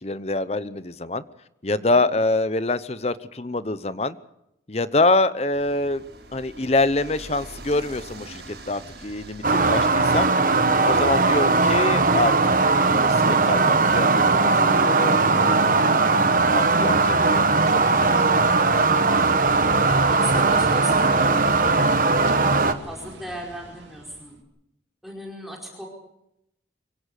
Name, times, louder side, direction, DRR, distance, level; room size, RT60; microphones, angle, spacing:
voice 1, 0.0-1.2 1.6-4.2 4.7-6.0 6.3-10.3 10.8-16.0 16.5-17.4 17.7-18.5, left 2 dB, 35° left, 15 dB, 0.8 m, -25 dB
voice 2, 1.7-2.1 19.4-24.4 25.0-25.9, equal, ahead, -1 dB, 4.8 m, -38 dB
sound 1, 5.5-12.0, right 2 dB, 65° right, 5.4 m, -44 dB
sound 2, 9.4-22.7, right 3 dB, 50° right, 1.1 m, -19 dB
sound 3, 19.4-24.4, right 1 dB, 85° right, 2.7 m, -39 dB
25.0 x 16.5 x 6.6 m, 0.81 s
head